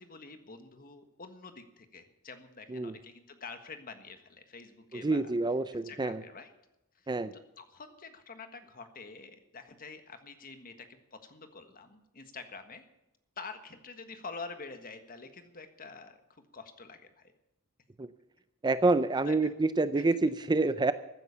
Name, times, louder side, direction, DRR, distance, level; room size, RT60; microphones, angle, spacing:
voice 1, 0.0-5.3 5.8-6.5 6.9-7.1 7.6-12.8 13.4-17.3 19.3-19.5 19.9-20.2, left 4 dB, 40° left, 8 dB, 1.5 m, -47 dB
voice 2, 4.9-6.2 7.1-7.3 18.0-18.1 18.6-20.9, right 3 dB, 20° right, 12 dB, 0.4 m, -27 dB
15.0 x 9.7 x 7.1 m, 0.91 s
head